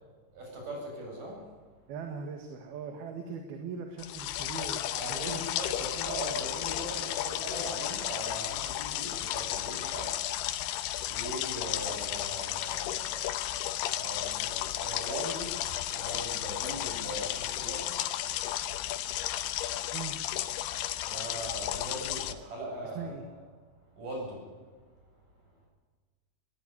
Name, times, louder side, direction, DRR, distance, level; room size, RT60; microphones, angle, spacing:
voice 1, 0.3-1.5 4.9-10.2 10.6-13.3 13.9-15.6 15.9-18.0 21.0-23.4 24.0-24.5, right 1 dB, 50° right, 0 dB, 9.6 m, -40 dB
voice 2, 1.9-4.8 5.1-5.4 19.9-20.2 23.0-23.3, right 6 dB, 65° right, 5 dB, 3.7 m, -40 dB
sound 1, 4.0-22.3, left 13 dB, 80° left, 2.9 m, -33 dB
22.0 x 18.0 x 9.8 m, 1.5 s
omnidirectional pair, 4.9 m